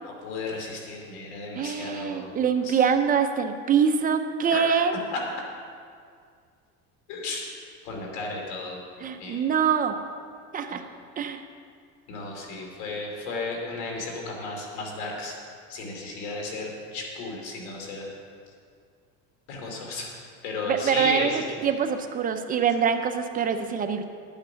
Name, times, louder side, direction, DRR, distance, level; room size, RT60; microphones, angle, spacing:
voice 1, 0.0-2.3 2.6-2.8 4.5-4.6 5.1-5.2 7.1-7.4 7.8-8.8 9.2-9.4 10.7-10.8 12.1-15.3 15.7-18.1 19.5-20.1 20.4-21.4, left 3 dB, 80° left, 0 dB, 3.0 m, -34 dB
voice 2, 1.5-5.0 9.0-9.9 10.5-10.8 11.2-11.4 20.6-21.3 21.6-24.0, right 7 dB, 25° right, 6 dB, 0.6 m, -24 dB
11.5 x 8.9 x 5.7 m, 2.1 s
cardioid pair, 145°, 34 cm